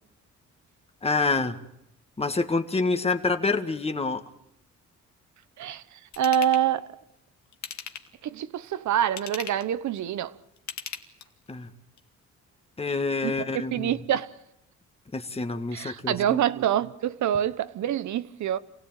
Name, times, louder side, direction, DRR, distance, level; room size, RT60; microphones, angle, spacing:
voice 1, 1.0-1.6 2.2-4.2 11.5-11.7 12.8-14.0 15.1-16.4, left 3 dB, 20° left, 2.0 m, -27 dB
voice 2, 5.6-6.9 8.2-10.3 13.2-14.3 15.7-18.6, right 10 dB, 70° right, 1.2 m, -26 dB
Ratchet pawl / Tools, 6.1-6.6 7.5-8.2 9.0-9.7 10.6-11.5 12.0-12.1, left 8 dB, 70° left, 2.0 m, -38 dB
27.0 x 17.0 x 9.1 m
cardioid pair, 90°, 30 cm